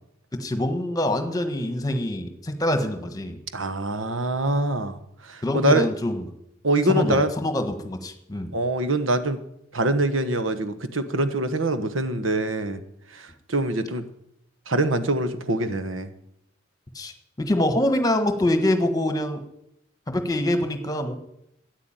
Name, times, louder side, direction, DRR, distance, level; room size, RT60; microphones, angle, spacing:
voice 1, 0.3-3.4 5.4-6.2 6.9-8.5 16.9-19.4 20.1-21.2, left 1 dB, 20° left, 7 dB, 1.4 m, -25 dB
voice 2, 3.5-5.0 5.2-5.9 6.6-7.3 8.5-9.4 9.7-12.8 13.1-14.0 14.7-16.1, right 1 dB, 85° right, 10 dB, 1.3 m, -24 dB
13.0 x 9.7 x 8.9 m, 0.80 s
head